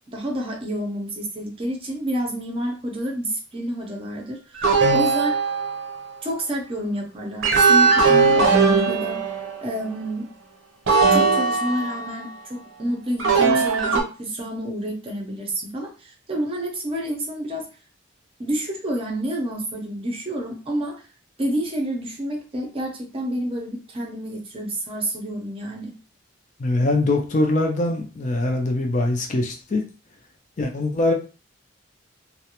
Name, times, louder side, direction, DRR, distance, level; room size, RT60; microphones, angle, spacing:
voice 1, 0.1-5.4 6.2-9.2 9.6-10.3 11.1-17.7 18.4-21.0 21.4-25.9, right 1 dB, 30° right, 0 dB, 0.6 m, -29 dB
sound 1, 4.6-6.1 7.4-9.8 10.9-12.3 13.2-14.0, right 4 dB, 85° right, 0.6 m, -19 dB
voice 2, 26.6-29.8 30.6-31.1, left 2 dB, 40° left, 3 dB, 0.4 m, -22 dB
2.4 x 2.1 x 2.8 m, 0.34 s
head